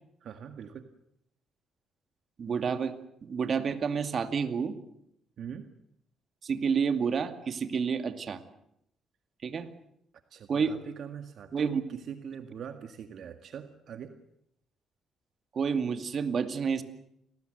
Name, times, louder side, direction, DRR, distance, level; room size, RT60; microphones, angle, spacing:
voice 1, 0.2-0.9 5.4-5.7 10.3-14.1, right 8 dB, 60° right, 8 dB, 1.9 m, -42 dB
voice 2, 2.4-2.9 3.2-4.8 6.4-8.4 9.4-9.7 10.5-10.8 11.5-11.8 15.5-16.8, right 6 dB, 45° right, 9 dB, 2.3 m, -29 dB
29.0 x 20.0 x 8.0 m, 0.76 s
cardioid pair, 110°, 0 cm